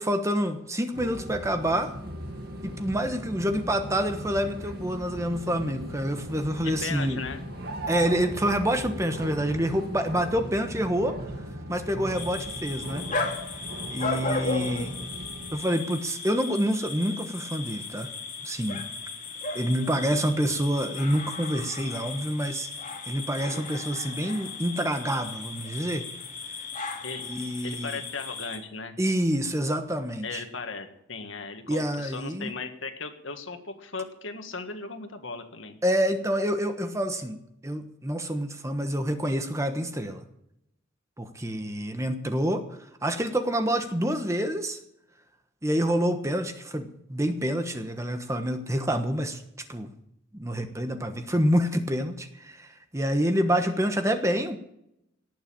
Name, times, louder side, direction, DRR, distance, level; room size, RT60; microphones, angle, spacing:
voice 1, 0.0-1.9 2.6-7.2 7.9-11.2 11.7-13.1 13.9-14.9 15.5-18.1 18.4-18.8 19.5-22.7 23.1-26.1 27.2-28.0 29.0-30.4 31.7-32.5 35.8-37.4 37.6-40.2 41.2-42.7 43.0-44.8 45.6-49.4 49.7-49.9 50.3-54.6, equal, 15° right, 7 dB, 1.2 m, -27 dB
sound 1, 0.9-15.6, right 1 dB, 55° right, 2.0 m, -38 dB
voice 2, 6.8-7.4 27.0-27.3 27.6-29.0 30.2-35.8, left 4 dB, 80° left, 7 dB, 1.8 m, -37 dB
sound 2, 12.1-28.6, left 3 dB, 40° left, 2.5 m, -36 dB
18.5 x 6.7 x 8.8 m, 0.79 s
head